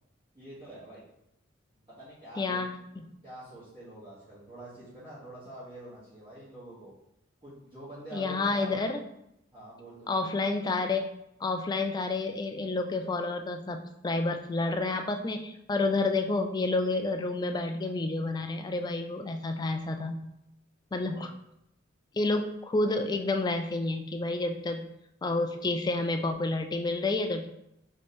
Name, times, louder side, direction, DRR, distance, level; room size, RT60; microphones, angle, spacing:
voice 1, 0.3-1.0 1.9-6.9 7.4-8.7 9.5-10.3 21.0-21.3, right 1 dB, 25° right, -12 dB, 1.4 m, -46 dB
voice 2, 2.4-2.7 8.1-9.0 10.1-11.1 11.4-20.1 20.9-21.3 22.1-24.9 25.2-27.5, left 2 dB, 20° left, 5 dB, 0.3 m, -29 dB
3.4 x 3.0 x 4.1 m, 0.82 s
head